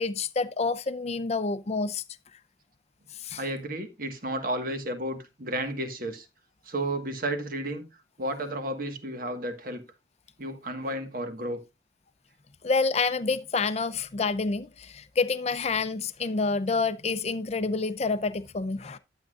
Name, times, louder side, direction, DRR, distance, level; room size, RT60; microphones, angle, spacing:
voice 1, 0.0-2.0 3.2-3.4 12.6-19.0, left 4 dB, 35° left, 0.5 m, -28 dB
voice 2, 3.4-6.3 6.6-7.8 8.2-9.8 10.4-11.6, right 1 dB, 50° right, 1.5 m, -32 dB
12.0 x 8.1 x 2.4 m
head